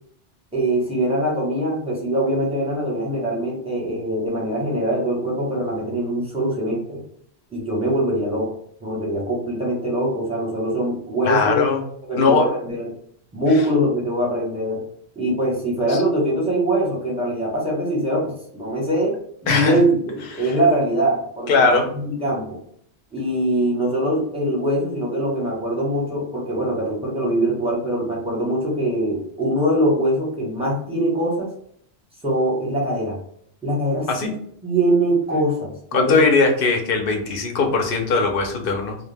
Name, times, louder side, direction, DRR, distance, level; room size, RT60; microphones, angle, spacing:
voice 1, 0.5-7.0 7.5-8.5 8.8-11.6 12.1-12.9 13.3-14.8 15.2-19.2 19.4-22.6 23.1-31.5 32.2-33.2 33.6-34.4 34.6-36.2, right 1 dB, 5° right, -4 dB, 0.9 m, -22 dB
voice 2, 11.2-11.8 12.2-12.5 15.9-16.0 19.5-19.8 20.3-20.5 21.5-21.9 34.1-34.3 35.9-39.0, left 4 dB, 60° left, 3 dB, 0.7 m, -19 dB
2.3 x 2.1 x 3.3 m, 0.63 s
omnidirectional pair, 1.1 m